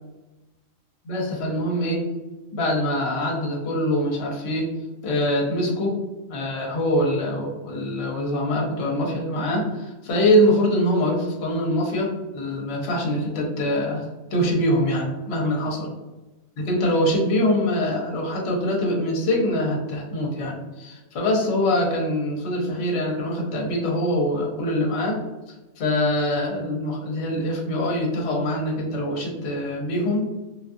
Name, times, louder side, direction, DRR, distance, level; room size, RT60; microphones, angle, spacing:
voice 1, 1.1-2.1 2.5-4.8 5.0-6.0 6.3-15.9 16.7-25.2 25.8-30.3, left 1 dB, 55° left, -2 dB, 0.8 m, -24 dB
2.4 x 2.3 x 2.5 m, 1.1 s
omnidirectional pair, 1.5 m